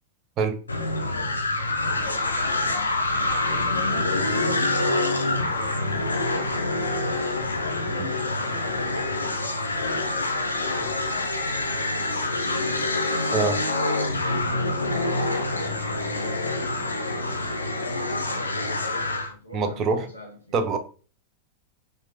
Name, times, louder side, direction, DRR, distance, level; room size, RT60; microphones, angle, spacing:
sound 1, 0.7-19.3, left 2 dB, 80° left, 0.5 m, -26 dB
voice 1, 0.7-6.5 7.8-12.8 14.8-16.7 17.8-20.6, left 1 dB, 90° right, 0.8 m, -43 dB
voice 2, 19.5-20.1 20.5-20.8, right 4 dB, 35° right, 0.5 m, -24 dB
4.4 x 2.5 x 2.8 m
figure-of-eight pair, 90°, 0 cm